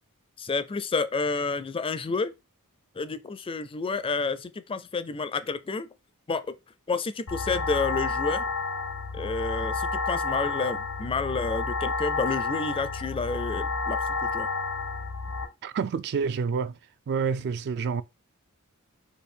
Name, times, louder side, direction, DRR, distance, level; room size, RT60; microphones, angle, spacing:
voice 1, 0.4-2.3 3.0-5.9 6.3-6.4 6.9-8.4 9.1-14.5, left 4 dB, 25° left, 0.4 m, -30 dB
sound 1, 7.3-15.4, left 4 dB, 85° left, 1.1 m, -30 dB
voice 2, 15.6-16.8 17.1-18.0, right 6 dB, 50° right, 0.3 m, -28 dB
5.1 x 2.3 x 4.4 m
head